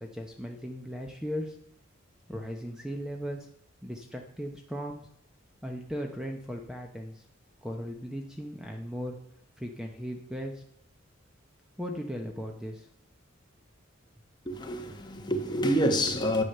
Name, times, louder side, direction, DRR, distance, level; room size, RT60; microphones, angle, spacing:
voice 1, 0.0-1.6 2.3-3.5 3.8-5.0 5.6-7.2 7.6-9.2 9.6-10.6 11.8-12.9, equal, 5° right, 0.9 m, -37 dB
voice 2, 14.5-16.4, equal, 20° left, 1.4 m, -27 dB
11.0 x 8.4 x 6.7 m
head